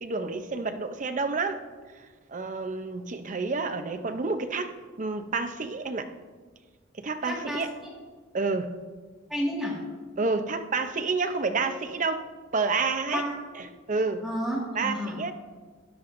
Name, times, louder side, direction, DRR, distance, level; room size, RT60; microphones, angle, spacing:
voice 1, 0.0-1.6 2.3-4.7 5.0-6.1 7.0-7.7 8.3-8.7 10.2-13.2 13.5-14.2 14.7-15.3, right 4 dB, 40° right, 8 dB, 0.6 m, -29 dB
voice 2, 7.2-7.6 9.3-9.8 13.1-13.3 14.2-15.2, equal, ahead, -5 dB, 1.7 m, -30 dB
13.0 x 10.0 x 2.6 m, 1.4 s
head